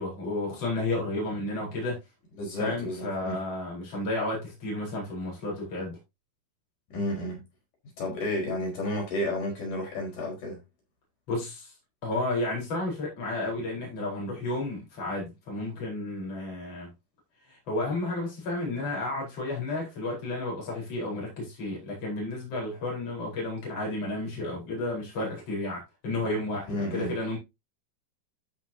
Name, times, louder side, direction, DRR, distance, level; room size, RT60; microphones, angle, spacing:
voice 1, 0.0-2.0 2.6-6.0 11.3-11.7 12.0-16.9 17.5-27.4, left 2 dB, 50° left, 5.5 m, -32 dB
voice 2, 2.4-3.4 6.9-7.4 8.0-10.6 26.7-27.1, left 1 dB, 70° left, 6.3 m, -31 dB
14.5 x 6.0 x 2.8 m
omnidirectional pair, 3.8 m